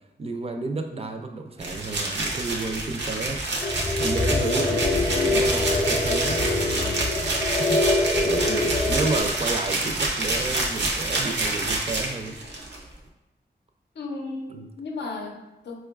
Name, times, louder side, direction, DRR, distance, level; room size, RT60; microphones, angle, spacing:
voice 1, 0.2-3.4 4.0-7.0 7.6-7.8 8.2-12.4 14.5-14.7, right 3 dB, 35° right, 4 dB, 0.3 m, -31 dB
sound 1, 1.6-12.8, right 2 dB, 85° right, 0.6 m, -27 dB
sound 2, 3.6-9.2, left 2 dB, 35° left, 0.5 m, -24 dB
voice 2, 13.9-15.8, left 3 dB, 85° left, 2 dB, 0.5 m, -35 dB
4.4 x 2.3 x 2.3 m, 0.98 s
wide cardioid pair, 80°, 18 cm